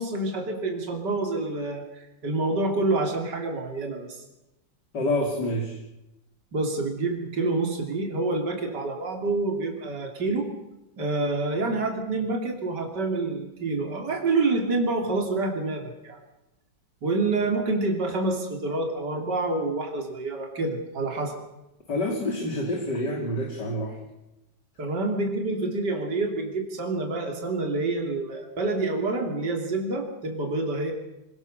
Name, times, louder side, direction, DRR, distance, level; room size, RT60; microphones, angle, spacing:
voice 1, 0.0-4.2 6.5-10.5 11.0-16.2 17.0-21.4 24.8-30.9, right 3 dB, 60° right, 3 dB, 3.6 m, -27 dB
voice 2, 4.9-5.8 21.9-24.0, left 1 dB, 60° left, 1 dB, 4.0 m, -27 dB
26.5 x 19.0 x 6.7 m, 0.93 s
omnidirectional pair, 2.1 m